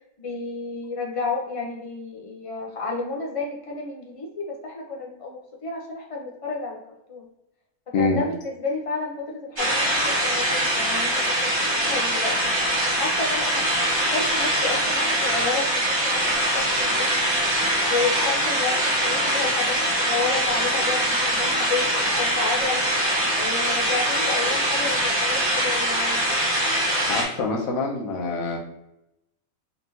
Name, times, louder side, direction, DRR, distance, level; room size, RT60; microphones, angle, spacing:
voice 1, 0.2-6.8 7.1-7.3 8.0-12.4 13.0-13.6 14.1-21.9 22.2-23.1 23.4-26.3, left 4 dB, 30° left, -1 dB, 0.7 m, -31 dB
sound 1, 9.6-27.2, right 1 dB, 20° right, 1.2 m, -23 dB
voice 2, 27.1-28.6, left 3 dB, 80° left, 0 dB, 1.2 m, -25 dB
4.1 x 3.3 x 2.8 m, 0.88 s
omnidirectional pair, 1.4 m